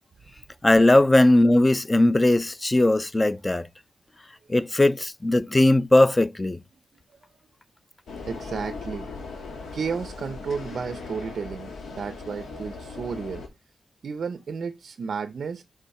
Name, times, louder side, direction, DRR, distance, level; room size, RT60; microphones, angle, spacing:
voice 1, 0.6-3.7 4.5-6.6, left 1 dB, 15° left, 0.4 m, -19 dB
sound 1, 8.1-13.5, left 4 dB, 85° left, 1.5 m, -38 dB
voice 2, 8.3-9.2 9.7-13.4 14.0-15.6, right 5 dB, 55° right, 0.4 m, -32 dB
6.8 x 3.6 x 4.7 m
wide cardioid pair, 130°, 0 cm